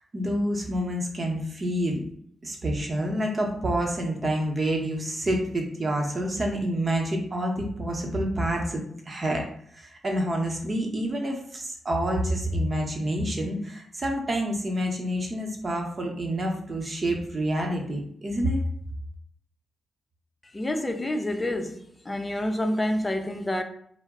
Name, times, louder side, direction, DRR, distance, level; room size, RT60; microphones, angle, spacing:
voice 1, 0.1-2.0 2.4-9.4 9.7-18.6, right 1 dB, 40° right, 1 dB, 0.8 m, -28 dB
voice 2, 20.5-23.6, left 1 dB, 25° left, 6 dB, 0.4 m, -28 dB
2.1 x 2.0 x 3.5 m, 0.65 s
supercardioid pair, 50°, 0 cm